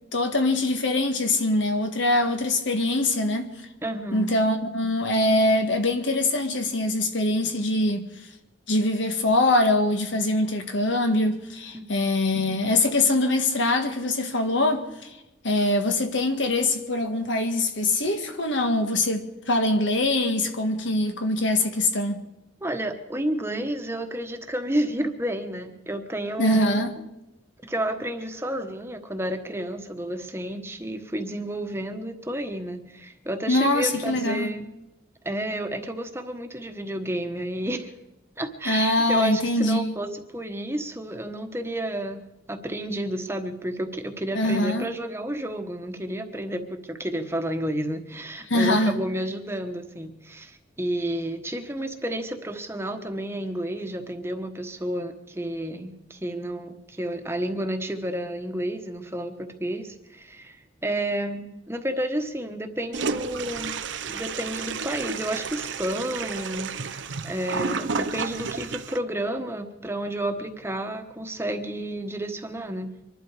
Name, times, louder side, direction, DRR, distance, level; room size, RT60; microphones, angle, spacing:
voice 1, 0.1-3.5 4.1-8.1 8.7-15.1 15.4-22.2 26.4-26.9 33.5-34.5 38.6-39.8 44.3-44.9 48.5-49.0, left 2 dB, 80° left, 1.7 m, -23 dB
voice 2, 3.8-4.3 11.7-12.1 22.6-27.0 27.6-34.7 35.2-37.9 38.4-42.2 42.5-72.9, right 1 dB, 15° right, 1.2 m, -31 dB
Toilet flush, 62.9-69.0, right 5 dB, 75° right, 0.8 m, -31 dB
24.5 x 12.0 x 4.8 m
head